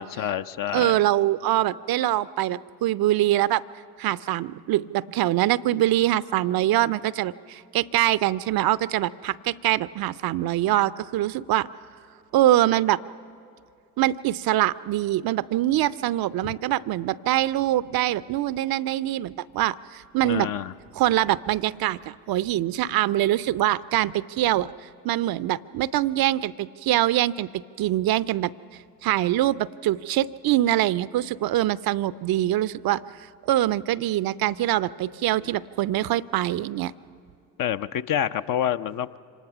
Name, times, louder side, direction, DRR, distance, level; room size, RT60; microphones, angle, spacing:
voice 1, 0.0-1.0 20.2-20.7 35.4-35.5 37.6-39.2, left 10 dB, 45° left, 12 dB, 0.6 m, -28 dB
voice 2, 0.7-3.6 4.0-11.7 12.3-13.0 14.0-20.5 21.0-27.5 27.8-28.5 29.0-33.0 33.5-36.9, right 14 dB, 50° right, 19 dB, 0.5 m, -24 dB
25.5 x 19.0 x 5.9 m, 2.5 s
hypercardioid pair, 50°, 46 cm